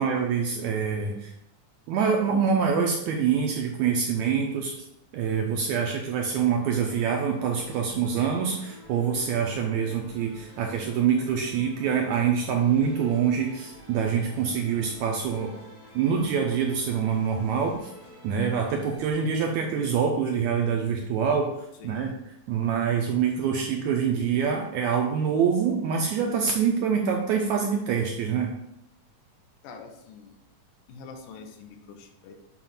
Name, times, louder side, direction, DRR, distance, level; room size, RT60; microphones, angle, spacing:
voice 1, 0.0-1.3 1.9-4.8 5.1-15.5 15.9-17.9 18.2-21.5 21.8-28.5, right 7 dB, 80° right, 1 dB, 1.7 m, -25 dB
sound 1, 6.2-19.1, left 1 dB, 15° left, 0.5 m, -49 dB
voice 2, 21.8-22.2 29.6-30.4 30.9-32.3, left 4 dB, 80° left, 4 dB, 2.3 m, -45 dB
7.2 x 2.4 x 5.6 m, 0.84 s
omnidirectional pair, 3.8 m